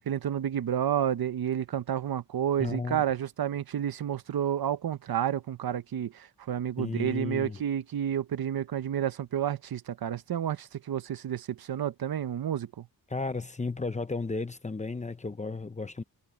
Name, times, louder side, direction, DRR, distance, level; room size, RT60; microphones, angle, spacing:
voice 1, 0.1-12.9, right 10 dB, 65° right, 0.8 m, -30 dB
voice 2, 2.6-3.0 6.8-7.6 13.1-16.0, left 3 dB, 20° left, 0.8 m, -34 dB
wide cardioid pair, 170°, 40 cm